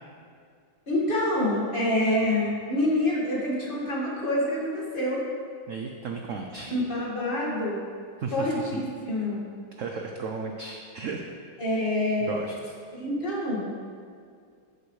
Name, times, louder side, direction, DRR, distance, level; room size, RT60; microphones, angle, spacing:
voice 1, 0.9-5.3 6.7-7.8 8.3-9.4 11.6-12.4 12.9-13.6, left 1 dB, 30° left, -5 dB, 1.9 m, -26 dB
voice 2, 5.7-6.7 8.2-8.8 9.8-11.2 12.2-12.7, right 5 dB, 75° right, 2 dB, 0.7 m, -35 dB
14.0 x 6.9 x 3.2 m, 2.2 s
omnidirectional pair, 2.1 m